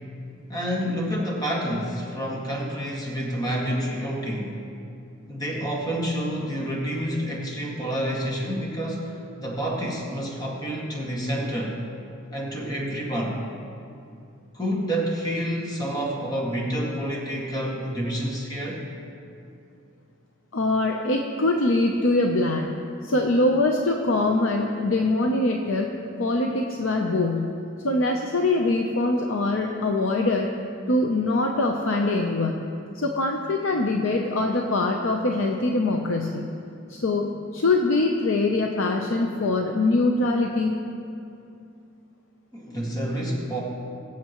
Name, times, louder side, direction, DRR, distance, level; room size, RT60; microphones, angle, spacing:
voice 1, 0.5-4.7 5.3-11.8 12.3-13.4 14.5-18.8 42.5-43.6, equal, 20° left, -3 dB, 1.9 m, -28 dB
voice 2, 20.5-22.7 23.0-25.9 26.2-27.5 27.8-30.5 30.9-32.6 32.9-36.4 36.9-40.8, left 2 dB, 70° left, 1 dB, 0.7 m, -23 dB
21.5 x 7.5 x 3.0 m, 2.6 s
head